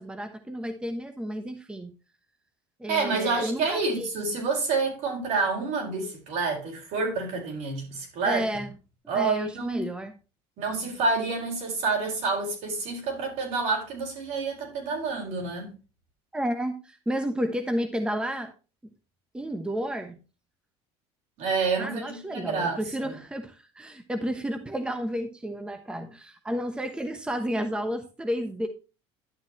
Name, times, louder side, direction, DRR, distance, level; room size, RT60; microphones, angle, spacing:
voice 1, 0.0-1.9 2.8-4.1 8.2-8.7 9.0-10.1 16.3-18.5 19.3-20.2 21.8-28.7, equal, 5° right, 1.0 m, -31 dB
voice 2, 2.9-8.4 9.1-9.9 10.6-15.7 21.4-23.1, right 4 dB, 65° right, 4.8 m, -28 dB
11.0 x 7.1 x 3.0 m
supercardioid pair, 110°, 13 cm